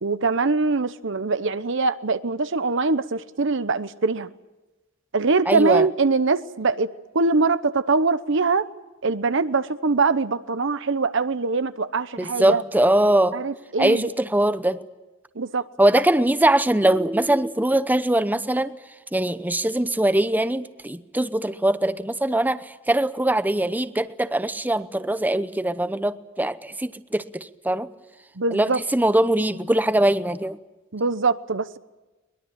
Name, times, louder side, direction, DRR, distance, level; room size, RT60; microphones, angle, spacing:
voice 1, 0.0-4.3 5.1-8.7 9.0-12.6 13.3-14.1 15.4-15.6 28.4-28.8 30.9-31.8, right 4 dB, 65° right, 13 dB, 0.9 m, -23 dB
voice 2, 5.5-5.9 12.2-13.4 13.8-14.8 15.8-18.7 19.1-27.9 28.5-30.6, right 1 dB, 10° right, 12 dB, 0.8 m, -22 dB
22.5 x 21.5 x 8.8 m, 1.1 s
head